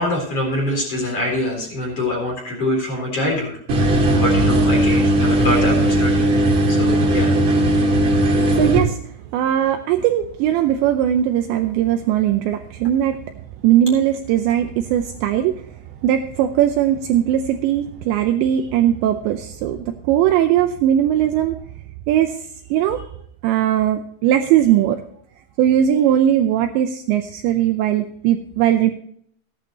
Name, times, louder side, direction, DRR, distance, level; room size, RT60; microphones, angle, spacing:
voice 1, 0.0-3.6 4.2-6.3 6.7-7.3, left 1 dB, 30° left, -1 dB, 4.2 m, -24 dB
sound 1, 3.7-8.8, right 1 dB, 45° right, 1.7 m, -17 dB
voice 2, 8.3-9.0 9.3-13.2 13.6-15.6 16.0-21.6 22.1-22.3 22.7-23.0 23.4-25.0 25.6-28.9, right 11 dB, 80° right, 6 dB, 2.7 m, -19 dB
15.5 x 11.0 x 3.0 m, 0.63 s
omnidirectional pair, 5.7 m